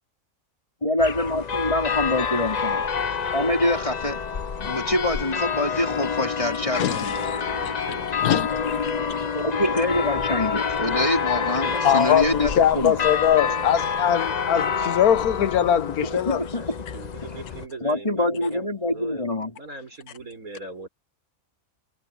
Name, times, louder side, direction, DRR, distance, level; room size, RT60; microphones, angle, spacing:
voice 1, 0.8-2.9 3.3-4.2 4.6-7.2 9.3-13.0 16.0-16.6 17.8-19.5, left 1 dB, 20° left, 3.7 m, -25 dB
sound 1, 1.0-17.7, left 6 dB, 45° left, 0.6 m, -28 dB
voice 2, 6.6-9.5 11.9-12.1 12.5-12.6 12.9-13.9 16.6-19.3 19.5-20.9, right 2 dB, 70° right, 6.3 m, -41 dB
voice 3, 11.8-16.4, left 9 dB, 85° left, 1.4 m, -21 dB
omnidirectional pair, 1.5 m